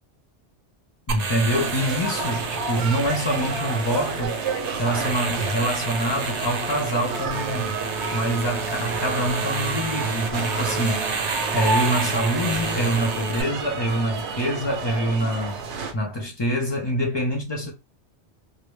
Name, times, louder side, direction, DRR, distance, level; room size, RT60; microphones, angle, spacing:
voice 1, 1.1-4.4 4.8-7.8 8.1-11.1 11.5-15.6 15.9-17.7, equal, 40° left, 0.4 m, -25 dB
sound 1, 1.1-13.4, right 4 dB, 55° right, 0.4 m, -30 dB
sound 2, 1.5-15.9, right 4 dB, 75° right, 0.8 m, -30 dB
2.1 x 2.1 x 3.1 m
omnidirectional pair, 1.2 m